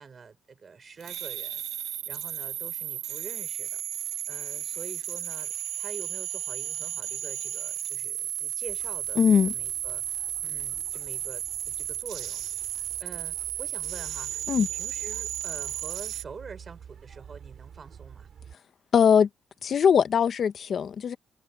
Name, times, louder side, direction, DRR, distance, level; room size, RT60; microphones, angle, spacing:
voice 1, 0.0-3.8 4.3-9.2 9.5-12.7 13.0-18.3, right 5 dB, 40° right, 6.1 m, -46 dB
sound 1, 1.0-16.2, right 11 dB, 80° right, 0.7 m, -34 dB
sound 2, 8.7-18.6, right 8 dB, 55° right, 6.5 m, -50 dB
voice 2, 9.2-9.5 14.5-14.7 18.9-19.3 19.6-21.2, left 7 dB, 55° left, 0.9 m, -21 dB
cardioid pair, 90°, 0 cm